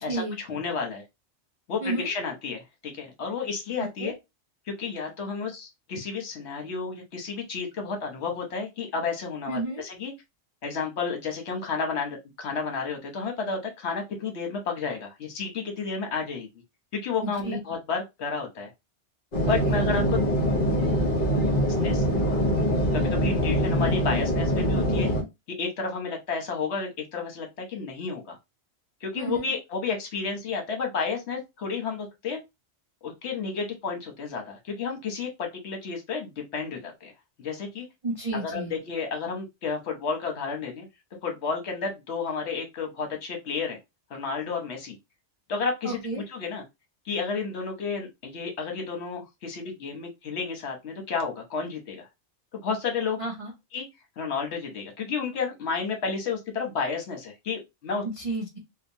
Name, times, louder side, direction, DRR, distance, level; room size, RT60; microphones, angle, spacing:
voice 1, 0.0-1.0 1.7-4.1 4.8-10.1 10.6-16.5 16.9-18.7 19.5-20.2 21.8-22.4 22.9-25.1 25.5-28.4 29.0-32.4 33.0-37.1 37.4-37.8 38.3-40.9 41.2-43.8 44.1-45.0 45.5-46.6 47.0-52.1 52.5-53.2 53.7-53.8 54.2-58.0, left 5 dB, 70° left, 3 dB, 1.1 m, -31 dB
voice 2, 1.8-2.1 4.0-4.1 9.5-9.9 17.2-17.6 19.5-19.8 29.2-29.5 38.0-38.7 45.8-46.2 53.2-53.5 58.0-58.6, right 2 dB, 50° right, 0 dB, 0.4 m, -31 dB
sound 1, 19.3-25.2, equal, 50° left, 1.0 m, -24 dB
2.8 x 2.2 x 2.7 m, 0.22 s
omnidirectional pair, 1.2 m